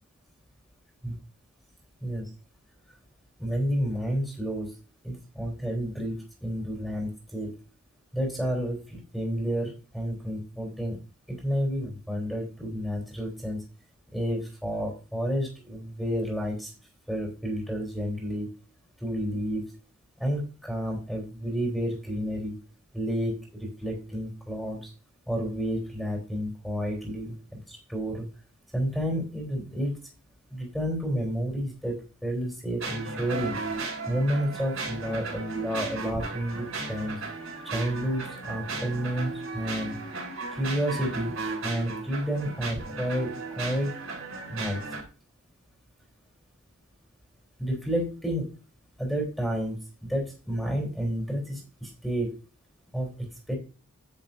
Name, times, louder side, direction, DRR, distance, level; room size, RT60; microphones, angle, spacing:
voice 1, 2.0-2.3 3.4-4.7 5.0-7.5 8.1-11.0 11.3-13.6 14.1-16.7 17.1-18.5 19.0-19.7 20.2-22.6 22.9-24.9 25.3-28.3 28.7-30.0 30.5-33.6 34.1-37.2 37.6-40.0 40.5-43.9 44.5-44.8 47.6-48.5 49.0-52.4 52.9-53.6, equal, ahead, 0 dB, 3.5 m, -30 dB
sound 1, 32.8-45.0, right 3 dB, 65° right, 3.9 m, -35 dB
9.9 x 9.1 x 2.6 m, 0.34 s
head